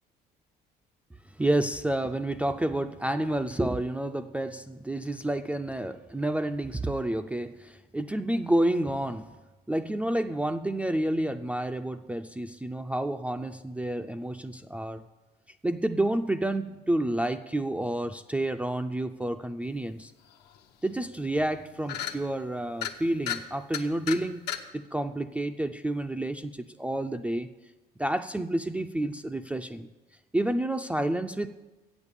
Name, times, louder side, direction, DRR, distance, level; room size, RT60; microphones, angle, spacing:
voice 1, 1.4-9.4 9.7-15.0 15.6-20.1 20.8-27.5 28.0-29.9 30.3-31.5, right 1 dB, 10° right, 6 dB, 0.4 m, -29 dB
sound 1, 20.6-20.7 21.0-21.1 21.4-21.6 21.9-22.2 22.7-22.9 23.3-23.4 23.7-24.2 24.5-24.6, left 10 dB, 80° left, 0.9 m, -33 dB
8.2 x 7.1 x 8.4 m, 1.1 s
cardioid pair, 110°, 17 cm